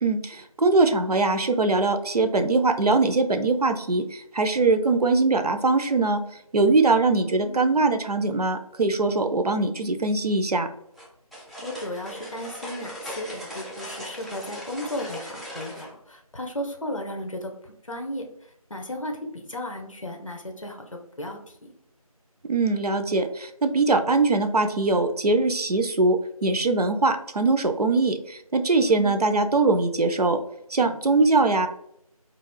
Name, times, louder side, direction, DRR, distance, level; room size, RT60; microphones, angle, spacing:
voice 1, 0.0-6.2 6.5-10.7 22.5-26.2 26.4-30.4 30.7-31.7, right 3 dB, 85° right, 7 dB, 0.4 m, -22 dB
voice 2, 7.3-7.6 11.6-18.3 18.7-20.9 21.2-21.7 28.9-29.1 31.1-31.5, left 1 dB, 60° left, 3 dB, 0.5 m, -35 dB
sound 1, 11.0-15.9, equal, ahead, 0.3 m, -39 dB
2.3 x 2.0 x 3.2 m, 0.74 s
figure-of-eight pair, 180°, 19 cm